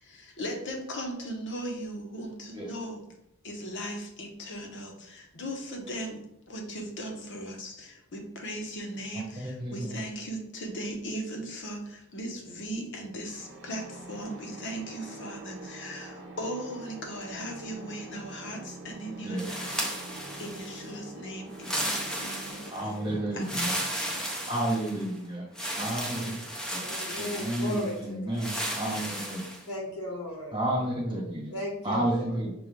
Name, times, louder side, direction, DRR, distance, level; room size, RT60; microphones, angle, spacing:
voice 1, 0.0-3.0 3.4-6.2 6.5-23.0 23.3-23.8, equal, 55° left, 2 dB, 0.9 m, -38 dB
voice 2, 9.4-10.0 19.2-19.4 22.7-23.7 24.5-25.5 25.8-26.4 26.7-26.8 27.2-29.4 30.5-31.5 31.8-32.5, right 1 dB, 20° right, -2 dB, 1.2 m, -31 dB
sound 1, 13.2-26.9, right 2 dB, 50° right, 0.7 m, -46 dB
sound 2, 19.4-20.9 21.5-22.9 23.4-25.1 25.5-27.9 28.4-29.6, right 1 dB, 5° left, 0.5 m, -34 dB
voice 3, 26.8-28.7 29.7-30.6 31.5-32.4, left 1 dB, 75° left, -2 dB, 1.4 m, -36 dB
5.9 x 2.3 x 3.7 m, 0.82 s
head